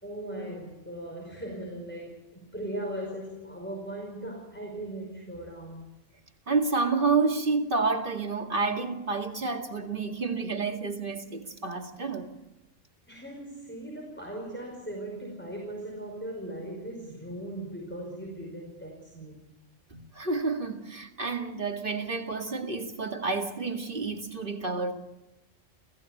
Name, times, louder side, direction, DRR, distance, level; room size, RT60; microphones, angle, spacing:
voice 1, 0.0-5.9 13.1-19.5, right 1 dB, 10° left, 5.2 m, -38 dB
voice 2, 6.5-12.4 19.9-24.9, right 4 dB, 40° right, 2.3 m, -29 dB
29.0 x 16.5 x 8.4 m
omnidirectional pair, 1.3 m